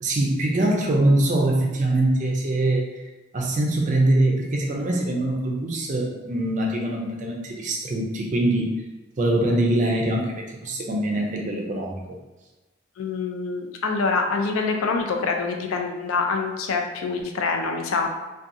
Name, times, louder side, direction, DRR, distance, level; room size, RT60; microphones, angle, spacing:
voice 1, 0.0-2.9 3.3-8.7 9.2-12.2, right 1 dB, 35° right, 0 dB, 0.4 m, -23 dB
voice 2, 13.0-18.1, left 4 dB, 85° left, 3 dB, 0.4 m, -25 dB
2.7 x 2.2 x 2.5 m, 1.1 s
head